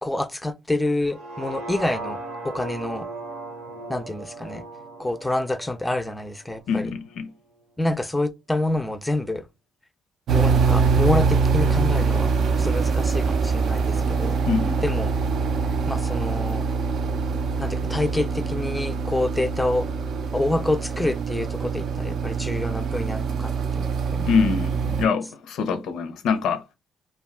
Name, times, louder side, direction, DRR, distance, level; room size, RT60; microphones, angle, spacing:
voice 1, 0.0-2.2 2.4-3.1 3.9-4.6 5.0-7.0 7.8-9.5 10.3-14.4 14.8-15.2 15.9-16.6 17.6-19.9 20.3-24.3, left 1 dB, 10° left, 0.4 m, -27 dB
sound 1, 1.0-7.2 7.6-7.7, right 2 dB, 90° right, 0.8 m, -37 dB
voice 2, 6.7-7.3 14.5-14.8 24.3-26.7, left 5 dB, 85° left, 0.5 m, -24 dB
sound 2, 10.3-25.0, right 5 dB, 65° right, 0.4 m, -24 dB
2.4 x 2.2 x 3.5 m
cardioid pair, 90°, 0 cm